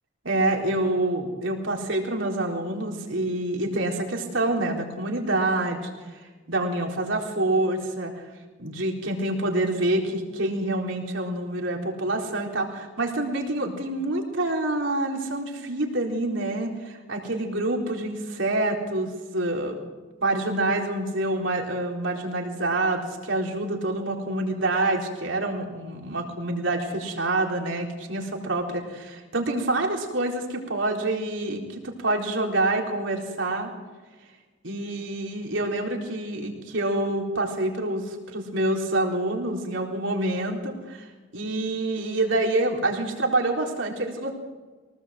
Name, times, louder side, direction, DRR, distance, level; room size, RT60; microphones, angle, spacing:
voice 1, 0.2-5.9 6.5-8.2 8.6-19.8 20.2-33.7 34.6-41.1 41.3-44.3, right 2 dB, 70° right, 1 dB, 4.2 m, -27 dB
24.0 x 19.0 x 7.7 m, 1.3 s
head